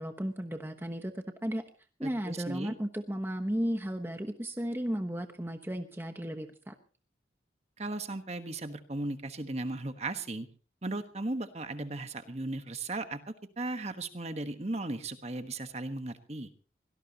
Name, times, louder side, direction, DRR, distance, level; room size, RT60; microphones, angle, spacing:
voice 1, 0.0-1.6 2.0-6.7, equal, 10° right, 6 dB, 1.1 m, -34 dB
voice 2, 2.0-2.7 7.8-10.5 10.8-16.5, right 2 dB, 35° right, 8 dB, 1.3 m, -36 dB
24.5 x 17.5 x 2.9 m, 0.38 s
head